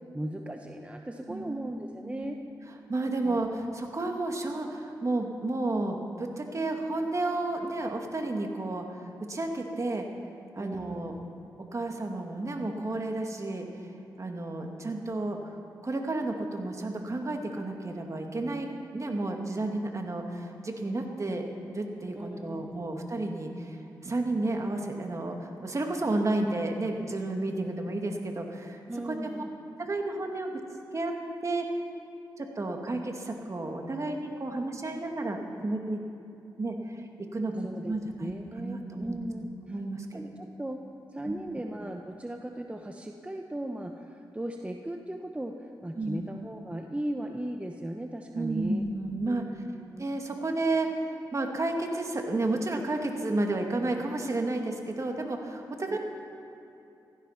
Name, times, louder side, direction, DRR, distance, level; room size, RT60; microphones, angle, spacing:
voice 1, 0.1-2.4 3.2-3.4 10.6-11.1 22.1-22.9 28.9-29.5 37.6-39.8 40.1-40.8 41.1-48.8 49.2-50.1 55.9-56.0, right 1 dB, 15° right, 3 dB, 1.0 m, -37 dB
voice 2, 1.3-1.7 2.0-2.3 2.9-8.9 9.3-10.1 10.6-11.1 11.7-13.7 14.2-15.4 15.8-21.4 21.7-23.8 24.0-28.8 29.0-29.4 29.8-30.5 30.9-31.1 31.4-31.7 32.4-36.0 36.6-39.2 39.7-40.2 41.3-41.4 46.0-46.3 48.3-49.4 50.0-56.0, right 2 dB, 40° right, 2 dB, 2.2 m, -31 dB
15.5 x 14.0 x 5.9 m, 2.8 s
cardioid pair, 55°, 8 cm